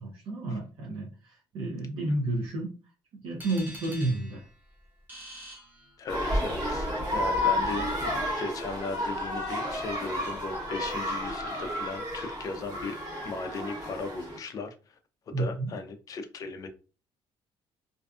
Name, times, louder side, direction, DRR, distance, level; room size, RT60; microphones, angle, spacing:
voice 1, 0.0-2.7 3.1-4.4 15.3-15.7, right 2 dB, 60° right, 0.6 m, -31 dB
sound 1, 3.4-6.4, equal, 20° right, 0.6 m, -46 dB
voice 2, 6.0-13.0 13.2-15.0 15.3-16.7, left 4 dB, 35° left, 0.4 m, -37 dB
sound 2, 6.1-14.4, left 1 dB, 45° right, 1.0 m, -31 dB
2.5 x 2.3 x 2.3 m
cardioid pair, 165°, 10 cm